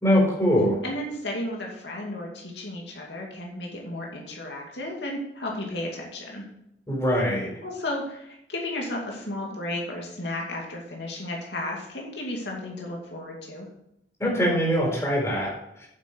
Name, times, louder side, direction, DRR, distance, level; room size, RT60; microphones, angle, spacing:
voice 1, 0.0-0.8 6.9-7.5 14.2-15.5, equal, 15° left, -3 dB, 4.4 m, -22 dB
voice 2, 0.8-6.5 7.6-13.7, left 1 dB, 75° left, -1 dB, 2.5 m, -33 dB
9.2 x 8.1 x 4.6 m, 0.81 s
head